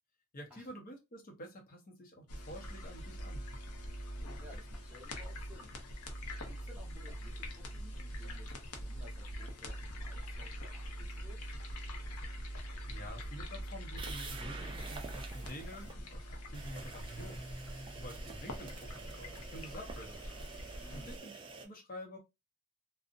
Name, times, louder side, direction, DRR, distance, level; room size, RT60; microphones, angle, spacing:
voice 1, 0.3-3.4 12.9-17.5 17.9-20.2 20.9-22.2, equal, 40° left, 0.7 m, -49 dB
sound 1, 2.3-21.2, equal, 90° left, 0.6 m, -43 dB
voice 2, 4.4-5.8 6.4-11.6 20.8-21.2, left 1 dB, 5° right, 0.8 m, -57 dB
sound 2, 14.0-15.9 16.5-21.7, right 4 dB, 25° right, 0.3 m, -48 dB
2.5 x 2.0 x 2.5 m
head